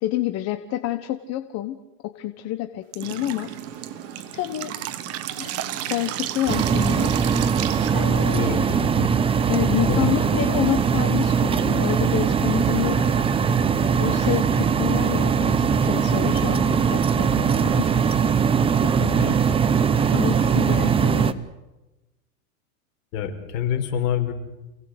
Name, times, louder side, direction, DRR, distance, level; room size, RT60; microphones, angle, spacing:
voice 1, 0.0-3.5 4.3-4.7 5.4-5.5 5.9-7.2 7.9-8.6 9.5-13.1 14.0-18.1 18.8-19.4 20.1-21.4, left 13 dB, 35° left, 8 dB, 1.3 m, -28 dB
Drip, 2.9-8.5, right 13 dB, 30° right, 1.4 m, -33 dB
sound 1, 3.0-8.9, right 8 dB, 50° right, 3.8 m, -39 dB
sound 2, 6.5-21.3, right 6 dB, 10° right, 0.8 m, -21 dB
voice 2, 8.3-9.1 9.9-10.4 19.1-19.3 23.1-24.3, left 8 dB, 60° left, 4 dB, 5.5 m, -27 dB
28.5 x 18.5 x 8.1 m, 1.0 s
supercardioid pair, 140°, 46 cm